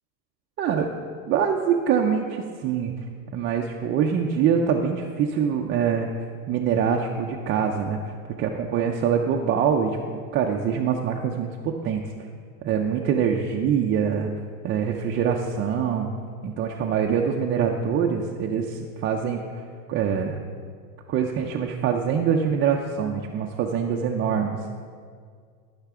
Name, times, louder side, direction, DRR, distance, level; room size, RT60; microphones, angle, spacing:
voice 1, 0.6-0.9 1.3-2.9 3.3-6.1 6.5-8.0 8.4-12.1 12.6-14.3 14.6-16.1 16.4-19.4 19.9-20.4 21.1-24.6, right 7 dB, 30° right, 1 dB, 0.4 m, -24 dB
13.5 x 5.8 x 3.6 m, 2.1 s
supercardioid pair, 130°, 45 cm